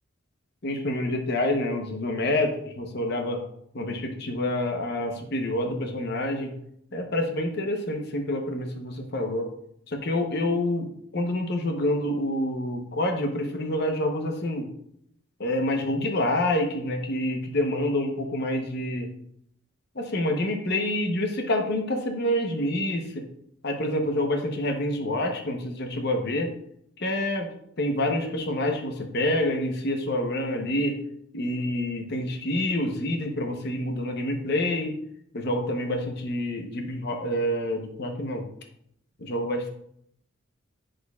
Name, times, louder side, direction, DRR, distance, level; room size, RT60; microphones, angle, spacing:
voice 1, 0.6-3.4 3.7-6.5 6.9-9.5 9.9-10.9 11.1-14.7 15.4-19.1 20.0-23.2 23.6-26.5 27.0-27.5 27.8-31.0 31.3-34.9 35.3-38.5 39.2-39.7, left 1 dB, 50° left, 4 dB, 0.9 m, -27 dB
7.7 x 6.2 x 2.3 m, 0.72 s
head